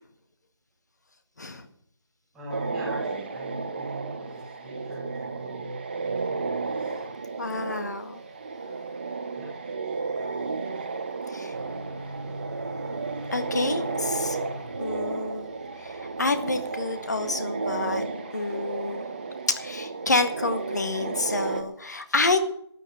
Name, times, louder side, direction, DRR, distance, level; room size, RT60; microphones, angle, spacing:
voice 1, 2.3-6.5 9.3-9.8, right 1 dB, 5° right, -4 dB, 1.3 m, -41 dB
sound 1, 2.5-21.6, right 4 dB, 25° right, 1.1 m, -33 dB
voice 2, 7.4-8.2 10.8-10.9 11.3-11.5 13.3-14.4 14.8-15.5 15.8-18.0 18.3-19.0 19.5-22.4, left 3 dB, 40° left, 9 dB, 1.7 m, -28 dB
sound 2, 11.5-17.3, right 1 dB, 40° right, 1.6 m, -41 dB
13.5 x 9.8 x 7.5 m, 0.68 s
figure-of-eight pair, 165°, 14 cm